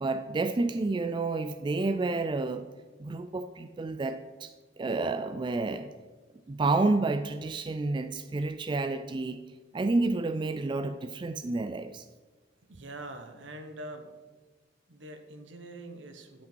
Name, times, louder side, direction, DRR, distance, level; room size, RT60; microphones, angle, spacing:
voice 1, 0.0-2.6 3.0-4.5 4.8-5.9 6.5-9.4 9.7-12.1, right 3 dB, 25° right, 9 dB, 0.3 m, -30 dB
voice 2, 12.7-14.1 14.9-16.4, right 1 dB, 80° right, 6 dB, 1.1 m, -44 dB
11.0 x 5.1 x 4.5 m, 1.3 s
head